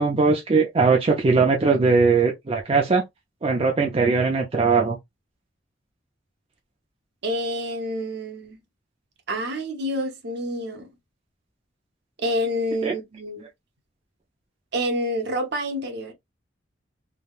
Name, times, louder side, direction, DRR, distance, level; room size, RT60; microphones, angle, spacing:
voice 1, 0.0-3.0 3.4-5.0 12.8-12.9, right 4 dB, 30° right, 0.4 m, -20 dB
voice 2, 7.2-8.6 9.3-10.9 12.2-13.4 14.7-16.1, equal, 55° right, 0.8 m, -28 dB
3.3 x 2.2 x 2.3 m
head